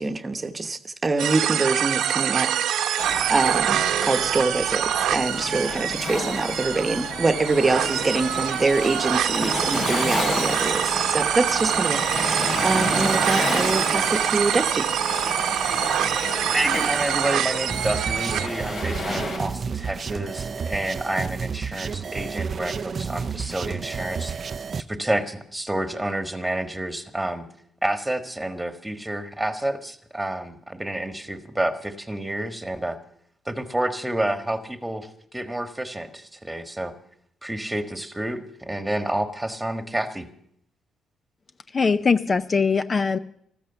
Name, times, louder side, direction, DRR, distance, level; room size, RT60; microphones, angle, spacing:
voice 1, 0.0-2.9 3.3-14.9 15.4-15.5, right 3 dB, 25° right, 8 dB, 1.1 m, -25 dB
sound 1, 1.2-18.5, right 10 dB, 80° right, 1.0 m, -25 dB
Waves surf, 3.0-19.4, left 2 dB, 80° left, 6.7 m, -31 dB
voice 2, 16.5-24.4 24.8-27.4 27.8-33.0 33.4-36.9 37.4-40.3, right 1 dB, 10° right, 9 dB, 1.5 m, -29 dB
sound 2, 17.7-24.8, right 6 dB, 45° right, 0.5 m, -31 dB
voice 3, 41.7-43.2, left 5 dB, 35° left, 12 dB, 0.5 m, -21 dB
14.0 x 13.5 x 6.9 m, 0.68 s
cardioid pair, 90°, 0 cm